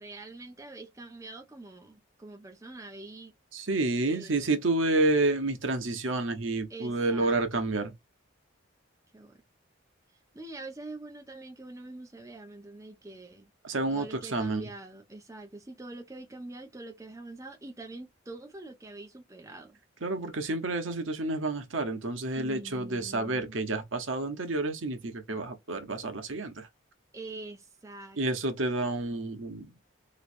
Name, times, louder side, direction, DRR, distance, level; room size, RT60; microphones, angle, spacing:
voice 1, 0.0-3.3 4.1-4.6 6.7-7.8 9.1-9.4 10.3-13.5 13.9-19.8 22.4-23.6 27.1-28.2, right 2 dB, 15° right, 0.7 m, -45 dB
voice 2, 3.5-7.9 13.6-14.6 20.0-26.7 28.2-29.7, right 2 dB, 75° right, 0.9 m, -29 dB
3.2 x 3.0 x 2.5 m
head